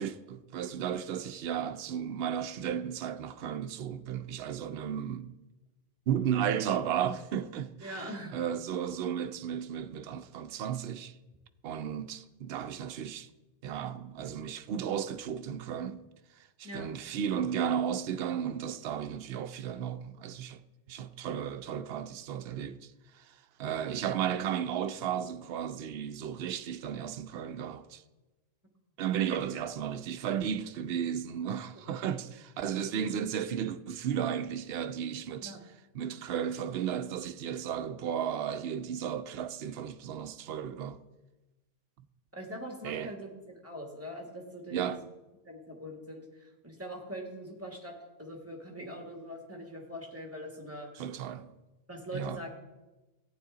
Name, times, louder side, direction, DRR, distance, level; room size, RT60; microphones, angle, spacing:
voice 1, 0.0-5.3 6.1-11.1 11.6-13.3 13.6-16.0 16.6-20.6 20.9-22.9 23.2-23.3 23.6-28.0 29.0-35.6 35.9-41.0 42.8-43.1 44.7-45.0 51.0-51.5 52.1-52.4, right 9 dB, 75° right, 0.8 m, -34 dB
voice 2, 7.8-8.4 16.6-16.9 35.4-35.6 42.3-45.0 45.5-47.9 48.2-51.0 51.9-52.5, equal, 15° right, 1.7 m, -42 dB
14.5 x 9.3 x 3.8 m
omnidirectional pair, 1.1 m